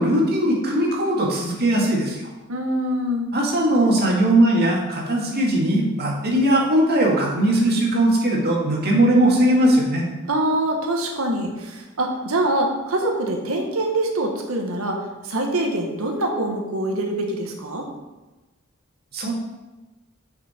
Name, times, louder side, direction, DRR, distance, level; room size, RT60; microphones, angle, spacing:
voice 1, 0.0-2.2 3.3-10.0 19.1-19.3, right 1 dB, 50° right, -2 dB, 2.0 m, -19 dB
voice 2, 2.5-3.3 10.3-15.0 15.2-17.9, right 1 dB, 85° right, 2 dB, 1.5 m, -24 dB
8.1 x 6.0 x 4.4 m, 1.1 s
head